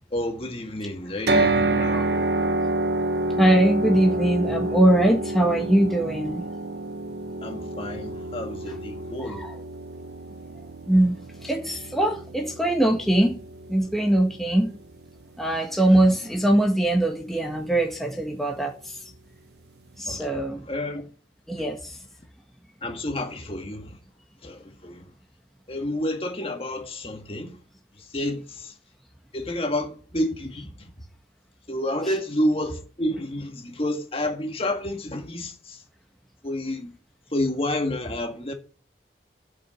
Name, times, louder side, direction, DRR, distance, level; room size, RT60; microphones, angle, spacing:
voice 1, 0.1-2.1 7.4-9.5 20.1-21.0 22.8-24.0 24.4-25.1 25.7-27.6 28.0-28.7 29.3-30.7 31.7-35.8 36.4-36.9 37.3-38.5, left 1 dB, 35° left, 1.9 m, -29 dB
sound 1, 1.3-15.4, right 2 dB, 65° right, 1.4 m, -28 dB
voice 2, 3.4-6.5 9.2-9.5 10.9-11.2 11.4-13.4 13.7-14.7 15.4-18.7 20.0-20.6 21.5-21.9, right 1 dB, ahead, 1.6 m, -21 dB
8.4 x 6.2 x 8.1 m
head